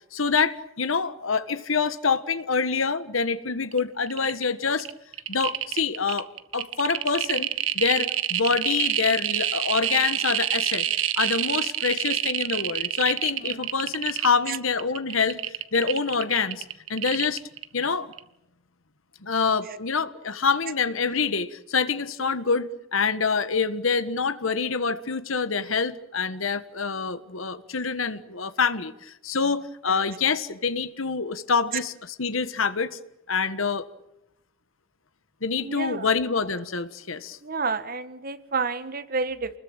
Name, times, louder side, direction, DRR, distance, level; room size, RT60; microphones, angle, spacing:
voice 1, 0.1-4.9 5.3-6.3 6.5-7.5 7.7-10.9 11.2-15.4 15.7-16.6 16.9-17.4 17.7-18.1 19.2-33.0 33.3-33.9 35.4-37.4, left 5 dB, 85° left, 12 dB, 1.5 m, -26 dB
sound 1, 3.7-3.8 4.1-4.4 4.8-17.8 18.1-18.2, right 11 dB, 85° right, 1.5 m, -27 dB
voice 2, 35.6-36.1 37.4-39.5, right 4 dB, 45° right, 13 dB, 1.5 m, -29 dB
28.5 x 21.5 x 8.9 m, 0.84 s
head